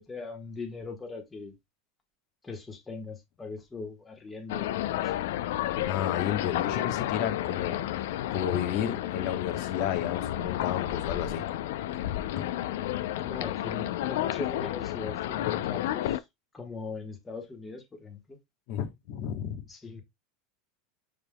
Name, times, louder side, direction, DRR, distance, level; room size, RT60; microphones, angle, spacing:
voice 1, 0.1-1.5 2.4-5.1 13.2-16.2 16.5-18.4 19.7-20.0, left 4 dB, 15° left, 1.4 m, -40 dB
sound 1, 4.5-16.2, left 13 dB, 80° left, 0.4 m, -31 dB
voice 2, 5.8-7.8 8.3-11.4 18.7-19.6, left 9 dB, 55° left, 1.1 m, -32 dB
6.6 x 3.6 x 2.2 m
supercardioid pair, 135°, 0 cm